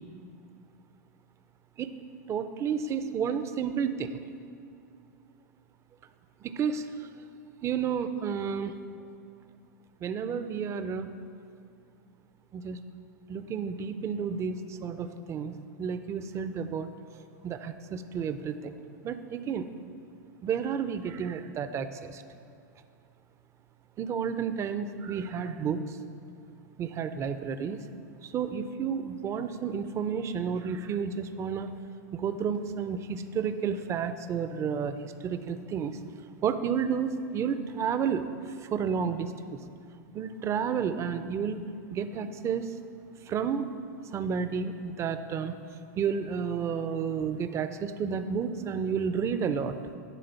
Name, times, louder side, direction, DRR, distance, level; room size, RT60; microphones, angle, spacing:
voice 1, 2.3-4.2 6.4-7.1 7.6-8.8 10.0-11.2 12.5-12.8 13.3-15.5 15.8-16.9 17.4-18.8 19.0-19.7 20.4-22.2 24.0-26.0 26.8-27.8 28.2-31.8 32.1-36.0 36.4-39.6 40.1-41.6 41.9-42.7 43.3-43.7 44.1-45.5 46.0-49.8, right 6 dB, 30° right, 11 dB, 0.5 m, -31 dB
10.0 x 3.7 x 7.0 m, 2.5 s
hypercardioid pair, 110°, 10 cm